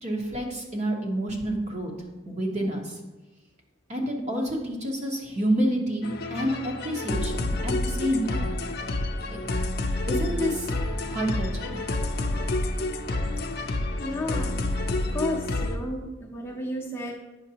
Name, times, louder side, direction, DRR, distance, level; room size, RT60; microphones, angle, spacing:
voice 1, 0.0-3.0 3.9-8.5 9.3-9.4 10.1-10.7 11.0-11.8, equal, 35° right, 0 dB, 1.2 m, -29 dB
sound 1, 6.0-15.8, left 2 dB, 50° left, 0.5 m, -29 dB
voice 2, 14.0-14.6 15.1-17.1, left 1 dB, 10° left, -3 dB, 0.7 m, -32 dB
8.8 x 6.5 x 2.9 m, 1.1 s
head